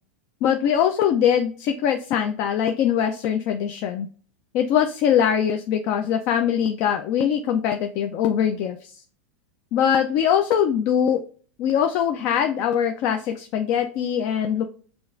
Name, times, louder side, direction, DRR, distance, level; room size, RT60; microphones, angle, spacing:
voice 1, 0.4-4.1 4.5-9.0 9.7-11.2 11.6-14.6, left 9 dB, 35° left, 6 dB, 0.4 m, -22 dB
6.7 x 2.4 x 2.4 m, 0.42 s
supercardioid pair, 155°, 7 cm